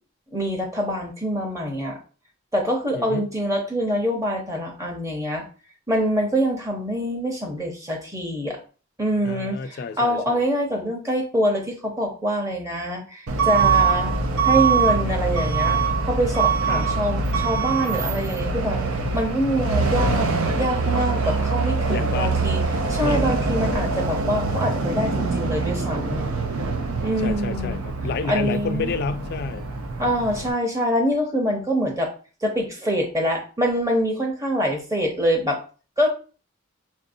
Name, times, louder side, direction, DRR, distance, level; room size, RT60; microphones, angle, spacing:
voice 1, 0.3-2.0 2.5-5.4 5.9-8.6 9.0-14.1 14.4-15.8 16.0-18.8 19.1-22.6 22.9-26.3 27.0-27.8 28.3-28.9 30.0-32.1 32.4-35.6 36.0-36.1, equal, 15° right, 0.8 m, -25 dB
voice 2, 2.9-3.3 9.2-10.5 16.7-16.9 21.9-22.3 23.0-23.4 27.2-29.6, left 4 dB, 50° left, 0.3 m, -30 dB
Truck / Alarm, 13.3-30.5, right 4 dB, 90° right, 0.5 m, -24 dB
5.4 x 2.6 x 2.6 m
head